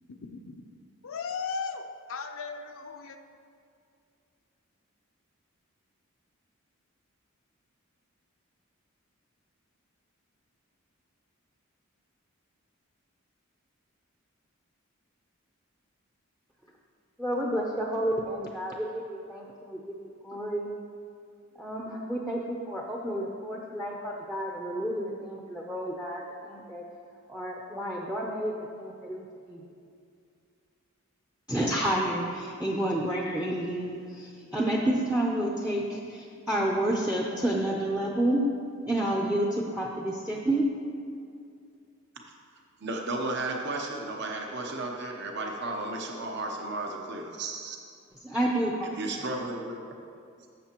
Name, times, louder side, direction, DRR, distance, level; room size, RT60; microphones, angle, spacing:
voice 1, 0.3-0.6 1.0-3.2, left 5 dB, 65° left, 6 dB, 0.5 m, -36 dB
voice 2, 17.2-19.8 20.2-20.7 21.6-26.8 27.3-29.6 31.5-38.4 38.8-40.6 48.2-48.9, right 1 dB, 5° right, -2 dB, 0.6 m, -30 dB
voice 3, 42.8-47.8 49.0-49.8, right 2 dB, 55° right, 1 dB, 0.8 m, -34 dB
14.5 x 6.6 x 3.0 m, 2.4 s
head